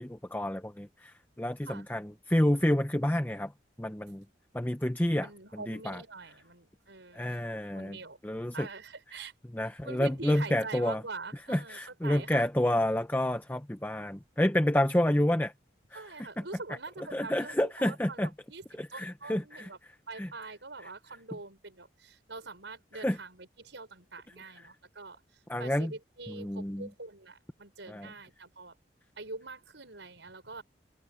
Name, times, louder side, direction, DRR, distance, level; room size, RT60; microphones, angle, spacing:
voice 1, 0.0-3.5 3.8-4.2 4.5-5.3 5.7-6.0 7.1-8.7 9.5-11.0 11.5-15.5 15.9-16.0 17.1-18.3 18.8-19.7 20.1-20.3 22.9-23.2 25.5-25.9 26.3-26.9 27.9-28.1, left 1 dB, 10° left, 0.7 m, -29 dB
voice 2, 5.2-7.4 7.7-8.2 8.5-9.3 9.8-12.5 14.5-14.9 15.9-19.8 20.1-28.8 29.2-30.6, right 3 dB, 90° right, 6.2 m, -44 dB
head